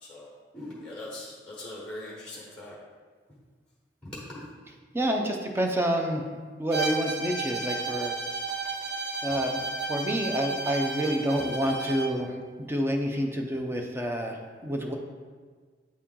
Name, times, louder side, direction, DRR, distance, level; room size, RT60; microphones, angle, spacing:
voice 1, 0.0-2.7 4.0-4.4, left 1 dB, 5° left, -4 dB, 1.1 m, -41 dB
voice 2, 4.9-6.2 6.6-8.1 9.2-9.6 9.9-14.9, equal, 15° right, 2 dB, 0.6 m, -28 dB
Bowed string instrument, 6.7-12.2, right 3 dB, 60° right, 0.8 m, -33 dB
8.5 x 4.3 x 3.7 m, 1.5 s
head